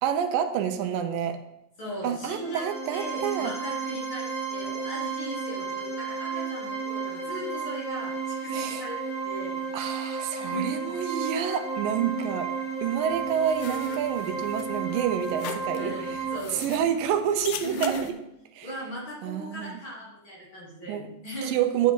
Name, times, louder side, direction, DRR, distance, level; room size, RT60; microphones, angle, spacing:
voice 1, 0.0-1.4 2.0-3.5 8.5-8.8 9.7-12.5 12.8-16.2 16.5-18.1 18.6-18.7 19.2-19.8 20.9-21.1 21.5-21.9, right 9 dB, 85° right, 7 dB, 2.4 m, -28 dB
voice 2, 1.8-2.6 2.9-9.6 10.3-10.8 15.8-16.7 17.6-18.1 18.6-21.6, right 1 dB, 40° left, -6 dB, 2.9 m, -37 dB
sound 1, 2.3-16.4, right 5 dB, ahead, 1.7 m, -33 dB
sound 2, 13.1-18.1, left 9 dB, 80° left, 1.8 m, -41 dB
9.7 x 7.2 x 3.7 m, 0.85 s
omnidirectional pair, 3.9 m